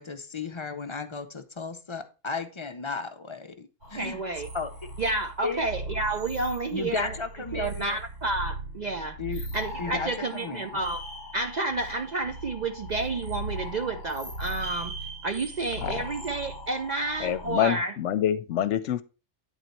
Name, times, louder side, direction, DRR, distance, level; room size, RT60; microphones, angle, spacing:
voice 1, 0.0-4.2 4.5-4.7 5.4-5.6 6.7-8.0 9.2-9.4 9.8-10.8, left 4 dB, 40° left, 0.4 m, -35 dB
sound 1, 3.8-17.7, right 1 dB, 80° right, 4.8 m, -39 dB
voice 2, 4.0-4.5 5.0-7.1 7.5-9.2 9.5-11.0 11.3-14.9 15.2-18.0, right 2 dB, 55° right, 0.5 m, -30 dB
voice 3, 17.2-19.0, left 10 dB, 75° left, 0.9 m, -26 dB
9.0 x 4.0 x 4.4 m
omnidirectional pair, 1.3 m